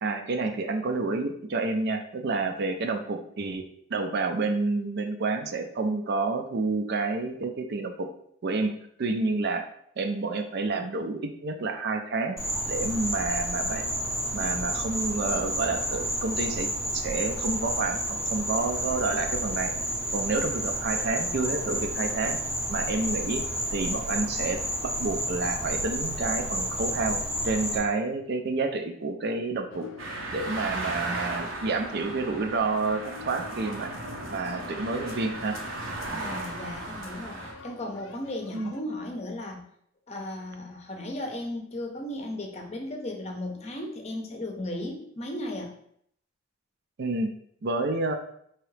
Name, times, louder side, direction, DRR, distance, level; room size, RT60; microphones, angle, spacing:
voice 1, 0.0-3.6 3.9-8.1 8.4-8.7 9.0-9.7 10.0-12.4 12.7-13.9 14.3-19.7 20.1-22.4 22.7-23.4 23.7-27.2 27.4-29.9 30.3-33.9 34.3-35.6 38.5-38.7 47.0-47.3 47.6-48.1, right 3 dB, 55° right, 6 dB, 0.5 m, -29 dB
Insect, 12.4-27.8, equal, 5° right, 0.7 m, -30 dB
sound 1, 29.7-38.8, left 5 dB, 80° left, 0.4 m, -46 dB
sound 2, 30.0-37.5, right 2 dB, 90° right, 0.9 m, -36 dB
voice 2, 36.1-39.6 40.1-45.7, left 1 dB, 35° left, 2 dB, 0.6 m, -36 dB
4.6 x 2.9 x 3.2 m, 0.68 s
head